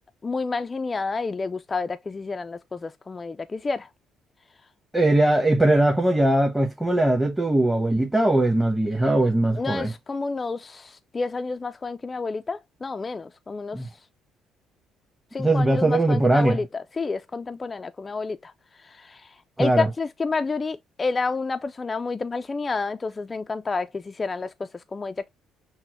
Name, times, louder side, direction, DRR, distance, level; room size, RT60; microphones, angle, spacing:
voice 1, 0.2-3.9 9.6-13.8 15.3-18.5 18.8-19.3 19.6-25.3, left 4 dB, 30° left, 0.3 m, -29 dB
voice 2, 4.9-9.9 13.7-13.9 15.4-16.6 19.6-19.9, right 1 dB, 10° right, 1.0 m, -20 dB
5.9 x 2.1 x 3.0 m
supercardioid pair, 75°, 0 cm